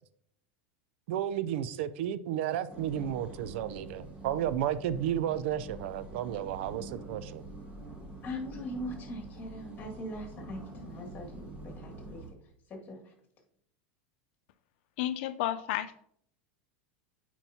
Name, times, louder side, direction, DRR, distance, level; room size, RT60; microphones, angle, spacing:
voice 1, 1.1-7.4, right 10 dB, 70° right, 0.4 m, -32 dB
sound 1, 2.7-12.3, right 2 dB, 20° right, 1.4 m, -46 dB
voice 2, 8.2-12.2 12.7-13.0, left 1 dB, 25° left, 2.1 m, -41 dB
voice 3, 15.0-16.0, left 13 dB, 65° left, 0.4 m, -32 dB
9.0 x 4.5 x 2.8 m
supercardioid pair, 130°, 6 cm